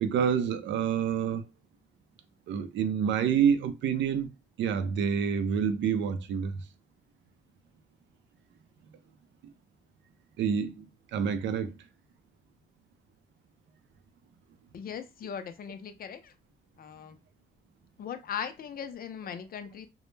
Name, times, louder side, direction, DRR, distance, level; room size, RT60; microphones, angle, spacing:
voice 1, 0.0-1.5 2.5-4.3 4.6-6.5 10.4-10.9 11.1-11.7, right 7 dB, 70° right, 0.4 m, -27 dB
voice 2, 14.7-16.3 16.8-17.2 18.0-19.9, left 7 dB, 50° left, 0.4 m, -39 dB
2.1 x 2.0 x 3.1 m
cardioid pair, 90°, 20 cm